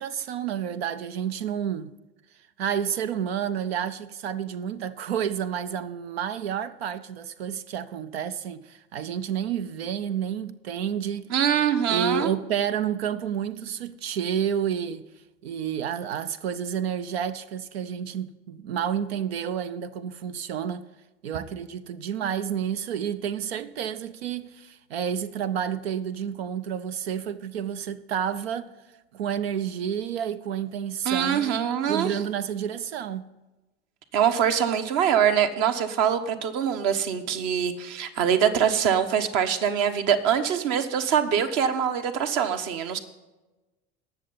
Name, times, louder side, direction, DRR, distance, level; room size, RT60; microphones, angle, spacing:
voice 1, 0.0-1.9 2.6-11.3 11.9-15.0 15.4-20.9 21.2-28.7 29.1-31.6 31.9-33.3, right 8 dB, 65° right, 0.6 m, -30 dB
voice 2, 11.3-12.3 31.0-32.2 34.1-43.0, right 8 dB, 50° right, 1.2 m, -24 dB
19.0 x 6.8 x 4.1 m
figure-of-eight pair, 70°, 33 cm